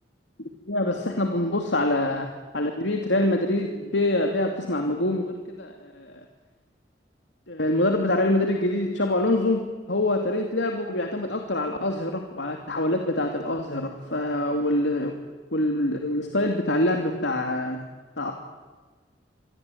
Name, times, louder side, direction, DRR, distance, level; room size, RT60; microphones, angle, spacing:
voice 1, 0.7-2.3 2.5-6.2 7.5-9.6 9.9-15.2 15.5-17.8 18.2-18.3, left 1 dB, 80° left, 4 dB, 2.7 m, -25 dB
26.5 x 22.0 x 9.4 m, 1.3 s
head